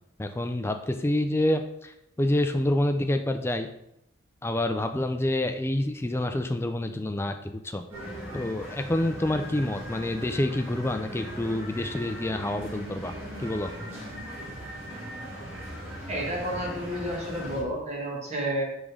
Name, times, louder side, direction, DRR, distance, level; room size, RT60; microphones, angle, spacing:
voice 1, 0.2-3.7 4.4-7.8 8.3-13.1 13.4-13.7, left 1 dB, 10° left, 7 dB, 0.3 m, -27 dB
sound 1, 7.9-17.6, equal, 10° right, 1.9 m, -39 dB
voice 2, 16.1-18.6, right 1 dB, 30° right, -2 dB, 1.3 m, -31 dB
5.0 x 3.6 x 5.2 m, 0.79 s
head